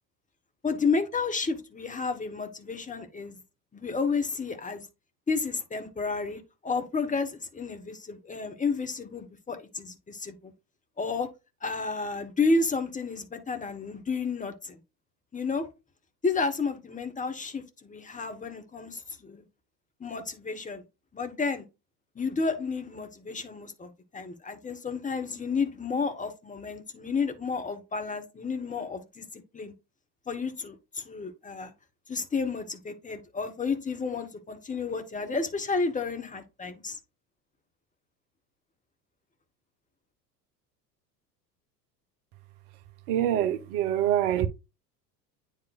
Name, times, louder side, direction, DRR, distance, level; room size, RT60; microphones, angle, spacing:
voice 1, 0.6-3.4 3.7-4.9 5.3-10.5 11.0-11.3 11.6-14.8 15.3-15.7 16.2-19.4 20.0-20.8 21.1-21.7 22.1-29.7 30.3-31.7 32.1-37.0, left 4 dB, 15° left, 1.4 m, -31 dB
voice 2, 43.1-44.5, right 11 dB, 60° right, 0.9 m, -25 dB
9.3 x 4.6 x 2.5 m
figure-of-eight pair, 75°, 50 cm